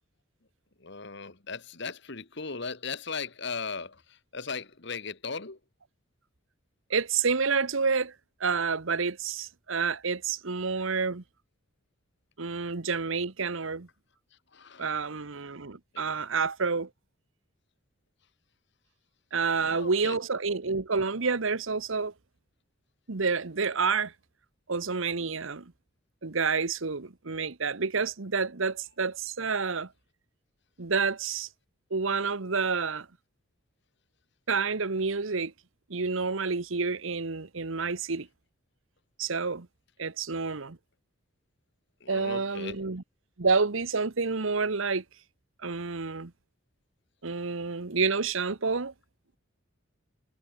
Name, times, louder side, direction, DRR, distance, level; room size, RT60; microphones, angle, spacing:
voice 1, 0.8-4.0 4.3-5.6 14.5-14.9 19.5-20.2 42.0-42.8, left 5 dB, 55° left, 1.6 m, -37 dB
voice 2, 6.9-8.1 8.4-11.2 12.4-13.9 14.8-16.9 19.3-22.1 23.1-24.1 24.7-25.7 26.2-29.9 30.8-31.5 31.9-33.1 34.5-35.5 35.9-38.3 39.2-39.7 40.0-40.8 42.1-43.0 43.4-45.0 45.6-46.3 47.2-48.9, right 4 dB, 70° right, 1.1 m, -29 dB
head